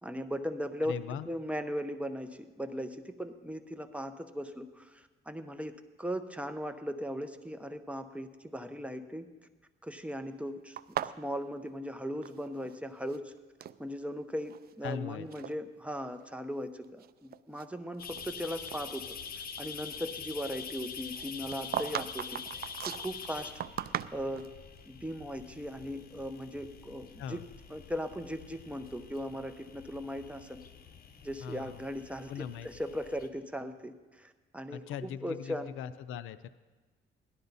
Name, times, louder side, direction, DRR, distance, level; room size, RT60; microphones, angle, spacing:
voice 1, 0.0-9.3 9.8-13.3 13.8-19.0 19.3-24.5 24.9-27.4 27.7-30.6 31.2-35.7, equal, 5° right, 7 dB, 0.9 m, -38 dB
voice 2, 0.8-1.3 14.8-15.3 27.2-27.5 31.4-31.8 32.3-32.7 34.7-36.5, left 8 dB, 85° left, 13 dB, 0.6 m, -40 dB
sound 1, 10.8-12.8 13.0-13.8 14.4-15.0 15.3-15.5 16.2-16.3 16.8-18.4 18.7-18.8 21.1-24.5, right 10 dB, 50° right, 0.4 m, -38 dB
sound 2, 18.0-33.3, left 6 dB, 50° left, 1.1 m, -46 dB
17.5 x 11.5 x 4.1 m, 1.3 s
cardioid pair, 90°, 20 cm